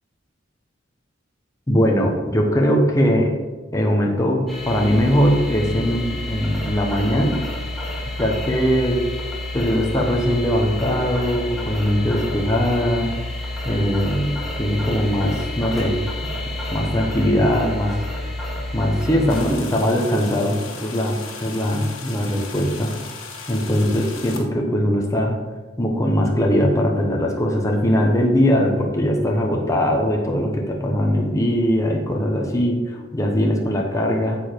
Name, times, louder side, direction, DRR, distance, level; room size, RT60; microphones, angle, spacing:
voice 1, 1.7-3.4 3.7-7.4 8.2-9.0 9.5-13.1 13.6-16.0 16.7-18.0 18.7-22.9 23.5-25.4 25.8-34.4, equal, 15° left, 0 dB, 1.1 m, -20 dB
sound 1, 4.5-19.4, left 1 dB, ahead, 2.1 m, -29 dB
sound 2, 19.3-24.5, left 5 dB, 85° left, 1.5 m, -37 dB
9.6 x 7.0 x 4.6 m, 1.3 s
head